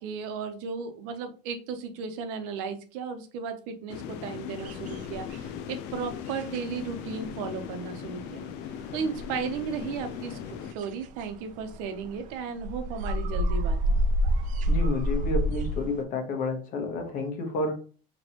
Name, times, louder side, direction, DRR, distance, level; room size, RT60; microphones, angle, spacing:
voice 1, 0.0-8.4 8.9-14.0, right 6 dB, 90° right, 7 dB, 0.8 m, -35 dB
sound 1, 3.9-10.7, left 9 dB, 75° left, 0.5 m, -38 dB
sound 2, 4.6-5.7 6.0-16.0, equal, 50° right, 0.5 m, -30 dB
voice 2, 14.7-17.7, left 3 dB, 50° left, 4 dB, 1.3 m, -30 dB
4.3 x 3.1 x 2.9 m, 0.38 s
cardioid pair, 145°, 17 cm